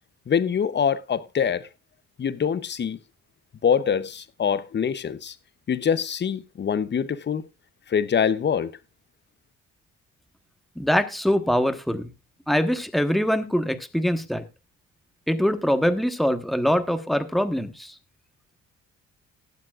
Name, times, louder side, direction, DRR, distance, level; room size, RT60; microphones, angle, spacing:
voice 1, 0.3-1.7 2.2-3.0 3.6-5.3 5.7-7.4 7.9-8.7, left 7 dB, 35° left, 0.8 m, -24 dB
voice 2, 10.8-12.1 12.5-14.4 15.3-17.9, equal, ahead, 1.2 m, -23 dB
19.5 x 7.3 x 2.4 m
cardioid pair, 90°, 30 cm